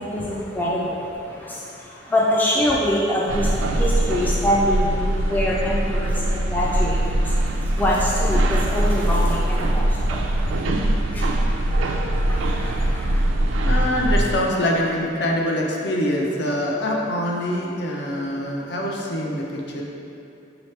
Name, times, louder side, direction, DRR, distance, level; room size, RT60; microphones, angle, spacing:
voice 1, 0.0-13.3, left 1 dB, 10° left, -5 dB, 0.3 m, -25 dB
sound 1, 3.3-14.3, right 1 dB, 90° right, 0.4 m, -22 dB
voice 2, 12.8-19.8, left 1 dB, 60° left, -1 dB, 0.6 m, -25 dB
5.6 x 2.9 x 3.2 m, 2.8 s
head